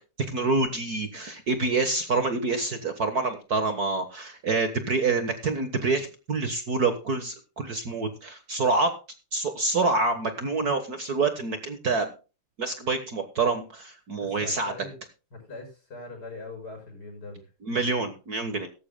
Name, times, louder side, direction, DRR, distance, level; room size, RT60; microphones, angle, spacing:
voice 1, 0.2-8.9 9.3-12.1 12.6-14.7 17.7-18.7, right 3 dB, 50° right, 8 dB, 1.7 m, -27 dB
voice 2, 14.2-15.0 15.3-17.5, left 3 dB, 45° left, 3 dB, 7.1 m, -41 dB
17.0 x 14.0 x 2.2 m, 0.33 s
omnidirectional pair, 2.4 m